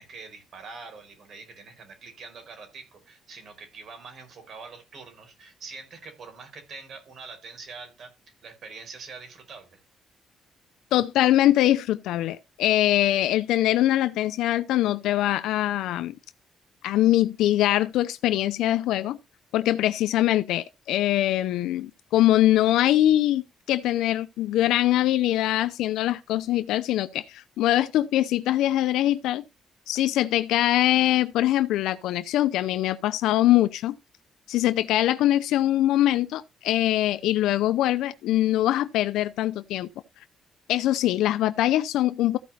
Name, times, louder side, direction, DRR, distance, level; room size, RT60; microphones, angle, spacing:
voice 1, 0.0-8.1 8.4-9.8, right 4 dB, 60° right, 4.8 m, -44 dB
voice 2, 10.9-16.1 16.8-19.2 19.5-29.4 29.9-34.0 34.5-39.9 40.7-42.4, left 14 dB, 90° left, 0.5 m, -23 dB
14.5 x 5.1 x 4.2 m
cardioid pair, 90°, 0 cm